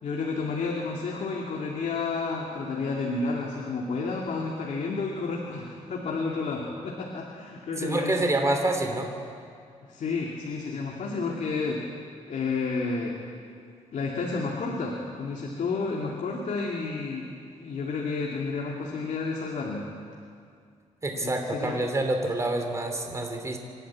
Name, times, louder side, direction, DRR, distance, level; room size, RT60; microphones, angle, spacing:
voice 1, 0.0-8.3 9.9-11.8 12.3-13.2 13.9-19.9 21.1-21.9, left 4 dB, 70° left, -1 dB, 2.4 m, -31 dB
voice 2, 7.8-9.1 21.0-23.6, right 2 dB, 25° right, 4 dB, 2.9 m, -27 dB
26.0 x 12.0 x 8.6 m, 2.2 s
cardioid pair, 105°, 13 cm